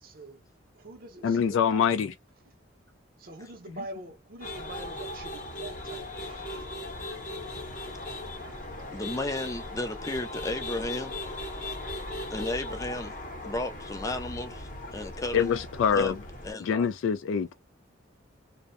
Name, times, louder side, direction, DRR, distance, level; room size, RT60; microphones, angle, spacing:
voice 1, 0.0-0.4 0.7-1.8 3.2-7.0, right 2 dB, 50° right, 0.6 m, -45 dB
voice 2, 1.2-2.1 15.3-16.2 16.6-17.5, left 7 dB, 80° left, 0.3 m, -25 dB
sound 1, 4.4-16.5, left 1 dB, 40° left, 0.7 m, -38 dB
voice 3, 8.9-11.2 12.3-13.2 13.4-15.5 15.9-16.1 16.4-16.9, left 2 dB, 15° left, 0.4 m, -33 dB
2.6 x 2.0 x 2.4 m
head